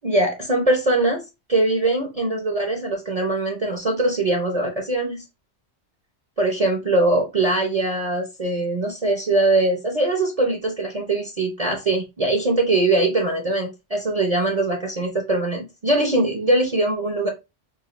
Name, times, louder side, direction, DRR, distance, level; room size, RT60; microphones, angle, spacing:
voice 1, 0.0-1.2 1.5-5.2 6.4-17.3, right 2 dB, 35° right, 0.8 m, -22 dB
6.4 x 2.4 x 2.5 m
omnidirectional pair, 1.2 m